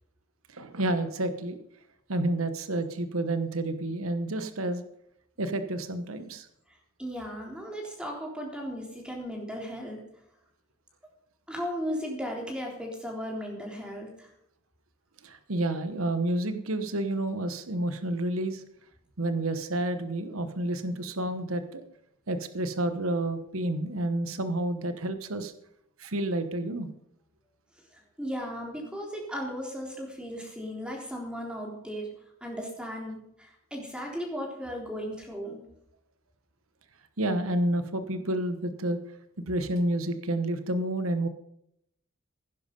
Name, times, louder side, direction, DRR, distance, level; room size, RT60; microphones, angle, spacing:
voice 1, 0.5-1.6 2.1-4.8 5.4-6.5 15.2-18.6 19.2-21.8 22.3-25.5 26.0-26.9 37.2-39.0 39.5-41.3, right 1 dB, 85° right, 10 dB, 1.1 m, -29 dB
voice 2, 7.0-10.0 11.5-14.3 28.2-32.1 32.4-35.6, equal, 5° right, 0 dB, 3.6 m, -36 dB
16.5 x 10.5 x 5.4 m, 0.76 s
head